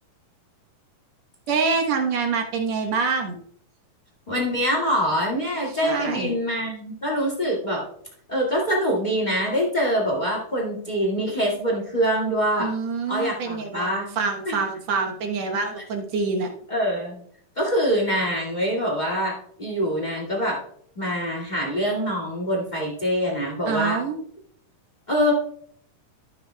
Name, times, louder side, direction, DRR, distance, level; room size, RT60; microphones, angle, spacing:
voice 1, 1.5-3.4 5.7-6.3 12.6-13.9 14.2-16.5 23.7-24.2, right 5 dB, 60° right, 2 dB, 2.1 m, -26 dB
voice 2, 4.3-7.8 8.3-12.7 13.1-14.1 14.4-14.6 16.7-17.2 17.5-20.6 20.9-24.0 25.1-25.3, equal, 20° left, -3 dB, 1.5 m, -24 dB
13.0 x 8.6 x 2.3 m, 0.63 s
omnidirectional pair, 3.8 m